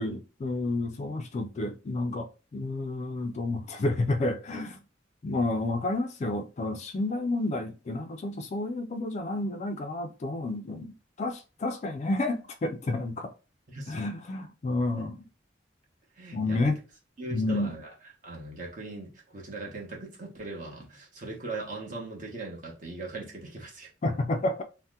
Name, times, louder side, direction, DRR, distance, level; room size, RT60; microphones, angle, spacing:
voice 1, 0.0-4.8 5.2-13.3 13.9-15.3 16.3-16.8 17.3-17.8 24.0-24.6, left 2 dB, 35° left, 0.3 m, -30 dB
voice 2, 13.7-14.0 16.2-16.7 17.2-17.9 18.2-23.9, right 2 dB, 45° right, 0.9 m, -39 dB
2.7 x 2.1 x 3.4 m
head